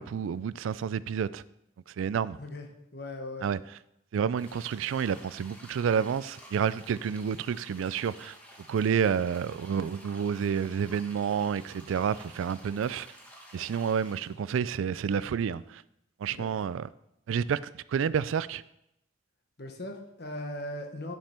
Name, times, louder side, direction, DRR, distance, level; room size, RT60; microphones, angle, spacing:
voice 1, 0.0-1.4 2.0-2.4 3.4-3.6 4.1-8.3 8.7-13.1 13.5-15.8 16.2-16.9 17.3-18.6, right 7 dB, 85° right, 18 dB, 0.3 m, -29 dB
voice 2, 2.9-3.5 16.3-16.6 19.6-21.1, left 1 dB, 55° left, 4 dB, 1.2 m, -39 dB
sound 1, 4.3-14.4, equal, 5° left, 1.1 m, -52 dB
10.0 x 5.4 x 4.4 m, 0.83 s
head